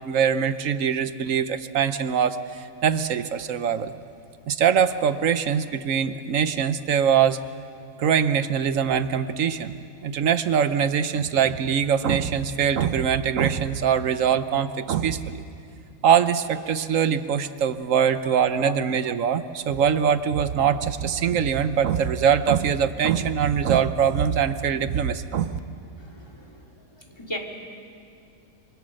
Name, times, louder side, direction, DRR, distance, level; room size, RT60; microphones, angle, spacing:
voice 1, 0.0-3.9 4.5-7.4 8.0-9.7 10.0-15.4 16.0-25.6, right 8 dB, 60° right, 12 dB, 1.1 m, -23 dB
voice 2, 26.0-26.5 27.2-27.4, left 1 dB, 15° left, 2 dB, 2.5 m, -34 dB
25.0 x 24.5 x 6.4 m, 2.4 s
omnidirectional pair, 1.6 m